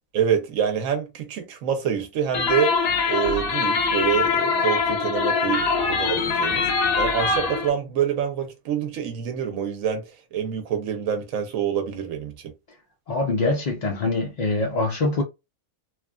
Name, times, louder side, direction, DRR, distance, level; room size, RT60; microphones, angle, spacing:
voice 1, 0.1-2.8 3.1-6.7 7.0-10.0 10.3-12.5, right 8 dB, 70° right, 1.1 m, -26 dB
sound 1, 2.3-7.7, left 4 dB, 90° left, 1.2 m, -23 dB
voice 2, 13.1-15.2, left 2 dB, 65° left, 0.4 m, -24 dB
3.1 x 2.3 x 2.3 m
omnidirectional pair, 1.5 m